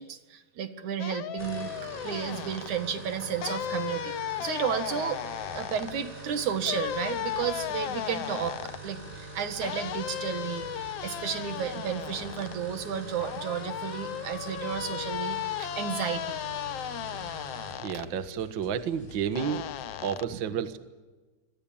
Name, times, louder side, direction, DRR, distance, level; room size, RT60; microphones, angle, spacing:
voice 1, 0.0-1.7 2.0-5.2 5.5-8.6 8.8-16.4 20.3-20.6, right 8 dB, 75° right, 9 dB, 3.2 m, -33 dB
sound 1, 1.0-2.7 3.4-5.9 6.6-8.8 9.6-12.6 13.2-18.1 19.4-20.3, left 11 dB, 65° left, 1.8 m, -35 dB
sound 2, 1.4-17.8, right 3 dB, 10° right, 7.5 m, -44 dB
sound 3, 5.2-20.0, left 1 dB, 40° left, 6.7 m, -51 dB
voice 2, 17.8-19.7 20.0-20.8, right 8 dB, 50° right, 10 dB, 1.7 m, -31 dB
28.0 x 23.5 x 8.8 m, 1.3 s
omnidirectional pair, 3.4 m